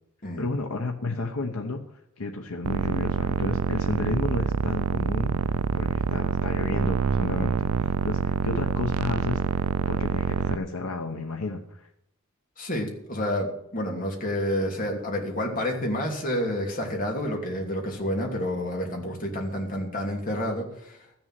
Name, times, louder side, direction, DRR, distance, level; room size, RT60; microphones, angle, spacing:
voice 1, 0.4-1.8 2.2-5.4 5.7-9.4 9.9-11.9, left 3 dB, 85° left, 3 dB, 1.0 m, -32 dB
sound 1, 2.6-10.6, right 6 dB, 90° right, 0.4 m, -26 dB
voice 2, 12.6-21.1, left 1 dB, 40° left, 0 dB, 2.8 m, -29 dB
14.0 x 7.1 x 7.6 m, 0.78 s
head